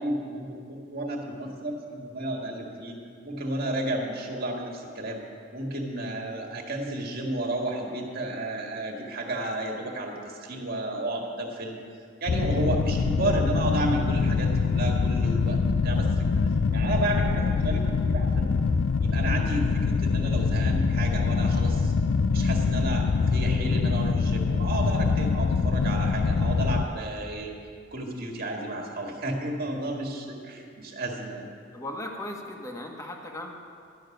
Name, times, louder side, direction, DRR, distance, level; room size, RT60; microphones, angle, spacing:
voice 1, 0.0-3.0 3.2-5.2 5.5-11.8 12.2-16.3 16.7-18.6 19.0-21.9 22.3-27.5 27.9-31.5, right 1 dB, 55° right, 0 dB, 1.8 m, -32 dB
sound 1, 12.3-26.8, left 4 dB, 90° left, 0.4 m, -24 dB
voice 2, 31.7-33.5, left 1 dB, 15° left, 1 dB, 1.3 m, -37 dB
12.5 x 6.5 x 9.1 m, 2.2 s
head